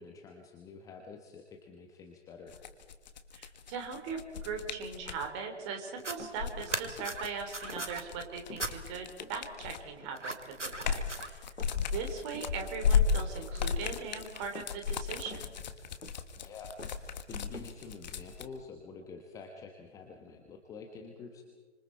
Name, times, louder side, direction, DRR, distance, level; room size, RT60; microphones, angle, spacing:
voice 1, 0.0-2.6 16.4-16.7 17.3-21.4, left 4 dB, 10° left, 3 dB, 1.1 m, -48 dB
sound 1, 2.5-5.3 6.2-10.0 10.4-18.5, left 6 dB, 35° left, 1.6 m, -34 dB
voice 2, 3.3-11.5 11.7-15.5, right 5 dB, 25° right, 4 dB, 3.4 m, -40 dB
sound 2, 5.9-6.2 6.6-8.0 8.6-8.7 10.2-11.3, right 2 dB, 85° right, 2.4 m, -38 dB
sound 3, 6.2-6.5 6.9-7.3 7.7-7.9 8.5-9.4 10.0-10.3 10.7-11.1 11.6-12.0 12.3-12.7 13.0-13.3 13.8-14.2 14.6-14.9 15.3-15.6 16.0-16.5 16.8-17.1 17.5-17.9, left 2 dB, 85° left, 1.9 m, -49 dB
29.0 x 26.0 x 4.5 m, 1.4 s
figure-of-eight pair, 135°, 36 cm